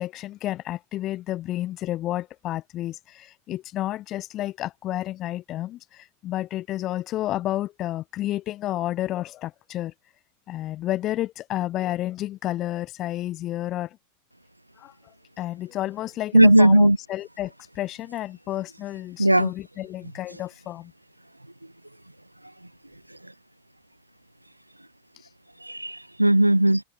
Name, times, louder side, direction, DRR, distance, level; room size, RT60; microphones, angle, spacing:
voice 1, 0.0-9.9 10.5-14.0 14.8-14.9 15.4-20.9, left 14 dB, 35° left, 0.5 m, -31 dB
voice 2, 16.3-17.0 19.2-19.5 25.7-26.8, right 1 dB, 85° right, 0.3 m, -17 dB
figure-of-eight pair, 90°, 0 cm